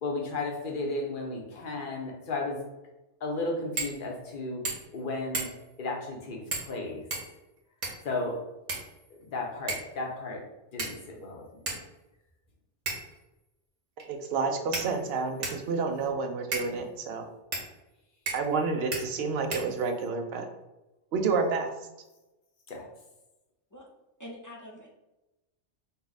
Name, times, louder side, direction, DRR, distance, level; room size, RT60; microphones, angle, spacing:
voice 1, 0.0-2.6 3.2-4.6 4.9-5.5 5.8-7.1 8.0-8.4 9.2-10.4 10.7-11.4 22.7-22.9, left 2 dB, 50° left, 0 dB, 1.0 m, -34 dB
sound 1, 3.8-4.0 4.3-4.4 4.6-5.0 5.3-5.7 6.5-6.8 7.1-8.1 8.7-9.3 9.7-10.0 10.8-11.2 11.7-11.8 12.9-13.2 14.0-14.1 14.7-15.7 16.5-16.7 17.5-17.7 18.3-18.6 18.9-19.0 19.5-20.1, right 3 dB, 85° right, 1.4 m, -35 dB
voice 2, 14.1-17.2 18.3-20.5 21.1-21.7, right 4 dB, 65° right, 5 dB, 0.8 m, -29 dB
voice 3, 24.2-24.9, left 1 dB, 20° left, -2 dB, 0.5 m, -44 dB
5.5 x 2.3 x 4.0 m, 1.0 s
omnidirectional pair, 1.2 m